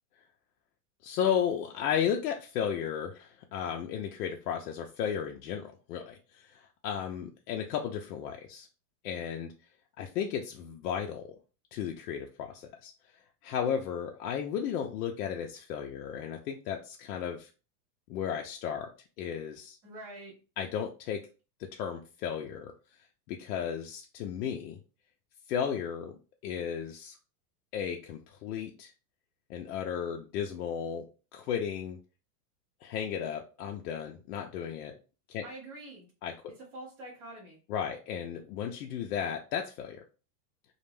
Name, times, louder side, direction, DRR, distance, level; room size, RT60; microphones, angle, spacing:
voice 1, 1.0-8.7 9.0-9.5 10.0-11.3 11.7-12.9 13.4-17.5 18.1-18.9 19.2-19.8 20.6-21.2 21.7-22.7 23.3-24.8 25.5-26.1 26.4-27.2 27.7-28.9 29.5-31.1 31.3-32.0 32.8-35.0 35.3-35.4 36.2-36.3 37.7-40.0, left 8 dB, 70° left, 2 dB, 0.5 m, -34 dB
voice 2, 19.8-20.3 35.4-36.1 36.7-37.6, right 1 dB, 15° right, -8 dB, 0.4 m, -45 dB
2.3 x 2.1 x 3.1 m, 0.34 s
supercardioid pair, 165°, 49 cm